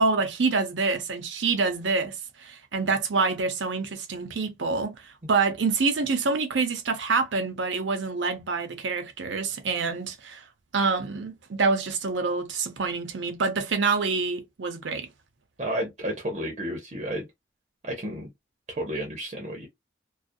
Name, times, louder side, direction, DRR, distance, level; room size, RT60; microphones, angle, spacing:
voice 1, 0.0-10.4 10.7-15.1, right 4 dB, 90° right, 0.6 m, -26 dB
voice 2, 15.6-17.3 17.8-18.3 18.7-19.7, right 1 dB, 40° right, 0.6 m, -31 dB
2.4 x 2.0 x 2.6 m
head